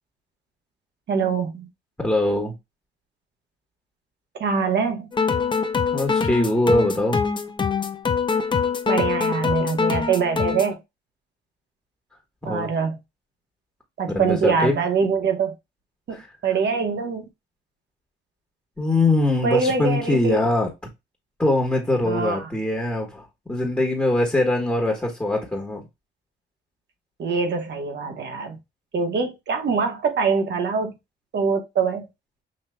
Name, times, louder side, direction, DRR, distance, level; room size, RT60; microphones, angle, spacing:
voice 1, 1.1-1.7 4.4-5.1 8.9-10.8 12.4-13.0 14.0-15.5 16.1-16.2 16.4-17.2 19.4-20.4 22.0-22.5 27.2-28.6 28.9-30.9 31.3-32.1, right 5 dB, 60° right, 1.2 m, -23 dB
voice 2, 2.0-2.5 5.9-7.2 12.4-12.7 14.1-14.7 16.1-16.3 18.8-20.7 21.4-25.8, left 2 dB, 10° left, 1.3 m, -22 dB
sound 1, 5.1-10.7, left 5 dB, 25° left, 0.6 m, -24 dB
6.3 x 3.0 x 2.2 m
cardioid pair, 90°, 20 cm